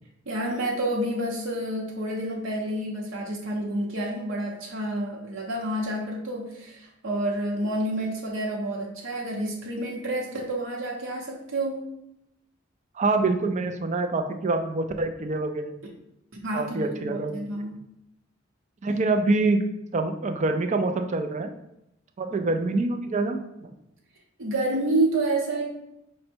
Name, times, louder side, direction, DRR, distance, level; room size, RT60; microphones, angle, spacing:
voice 1, 0.3-11.9 15.8-15.9 16.4-17.8 22.3-22.5 24.4-25.7, right 1 dB, 75° right, -2 dB, 0.9 m, -29 dB
voice 2, 13.0-15.8 16.5-17.4 18.8-19.6 19.9-21.5 22.2-23.7, right 3 dB, 35° right, 6 dB, 0.4 m, -25 dB
5.4 x 2.1 x 4.3 m, 0.82 s
head